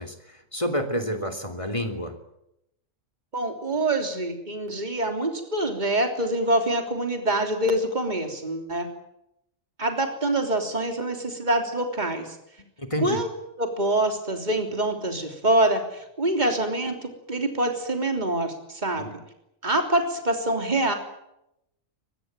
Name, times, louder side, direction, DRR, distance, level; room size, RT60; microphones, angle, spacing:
voice 1, 0.0-2.2 12.8-13.2 19.0-19.1, equal, 25° left, 5 dB, 2.9 m, -29 dB
voice 2, 3.3-8.9 9.8-12.4 13.0-13.3 13.6-19.1 19.6-20.9, right 1 dB, 35° right, 4 dB, 3.5 m, -25 dB
23.0 x 22.0 x 9.0 m, 0.84 s
omnidirectional pair, 1.4 m